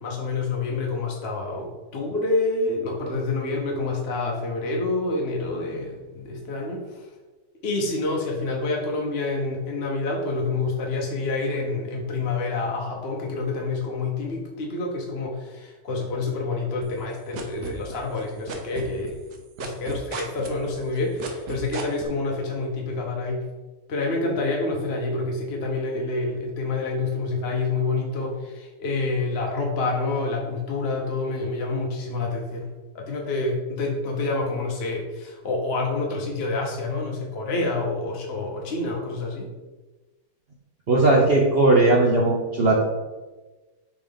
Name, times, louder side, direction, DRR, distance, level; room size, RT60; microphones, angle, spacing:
voice 1, 0.0-7.1 7.6-19.1 19.6-23.4 23.9-32.7 32.9-39.5, left 3 dB, 50° left, 0 dB, 0.8 m, -27 dB
sound 1, 16.8-18.2 18.5-22.1, right 6 dB, 75° right, 1.4 m, -34 dB
voice 2, 40.9-42.8, right 2 dB, 55° right, -2 dB, 0.7 m, -18 dB
4.9 x 3.8 x 5.1 m, 1.2 s
omnidirectional pair, 1.9 m